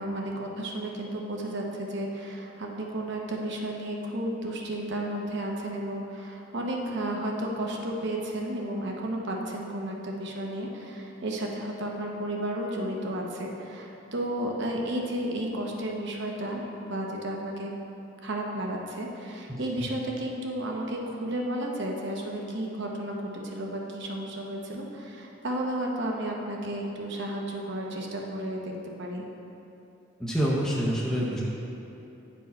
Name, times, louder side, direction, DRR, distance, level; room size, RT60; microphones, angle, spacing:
voice 1, 0.0-17.7 18.2-28.7 29.0-29.2, right 1 dB, 60° right, 0 dB, 0.9 m, -33 dB
voice 2, 19.5-19.9 30.2-31.4, equal, 5° left, -6 dB, 0.6 m, -27 dB
9.6 x 4.6 x 4.1 m, 2.9 s
head